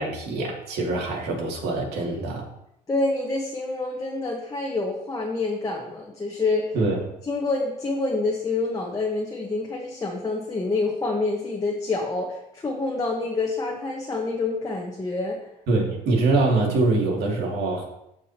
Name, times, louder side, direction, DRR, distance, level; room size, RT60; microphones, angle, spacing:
voice 1, 0.0-2.4 6.7-7.0 15.7-17.8, right 3 dB, 75° right, -1 dB, 2.6 m, -24 dB
voice 2, 2.9-6.7 7.3-15.4, left 3 dB, 20° left, -1 dB, 1.3 m, -27 dB
14.5 x 5.1 x 3.0 m, 0.82 s
cardioid pair, 110°, 17 cm